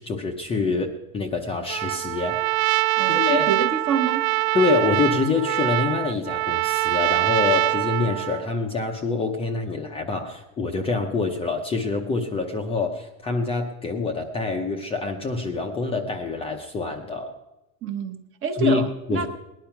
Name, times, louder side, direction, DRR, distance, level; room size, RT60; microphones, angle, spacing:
voice 1, 0.0-2.3 3.1-3.4 4.5-17.3 18.6-18.8 19.1-19.3, left 4 dB, 15° left, 2 dB, 0.6 m, -26 dB
Trumpet, 1.7-8.5, right 20 dB, 80° right, 0.5 m, -24 dB
voice 2, 3.0-4.2 17.8-19.3, right 6 dB, 30° right, 7 dB, 1.1 m, -27 dB
19.0 x 10.5 x 5.8 m, 0.97 s
supercardioid pair, 165°, 43 cm